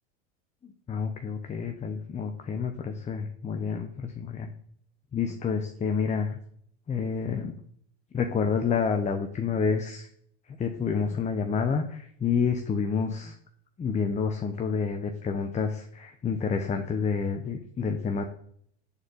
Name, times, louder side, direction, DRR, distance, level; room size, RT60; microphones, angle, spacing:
voice 1, 0.9-4.5 5.1-6.4 6.9-7.5 8.1-10.1 10.5-13.3 13.8-18.2, left 5 dB, 20° left, 6 dB, 0.8 m, -29 dB
7.2 x 4.3 x 6.6 m, 0.64 s
hypercardioid pair, 100°, 34 cm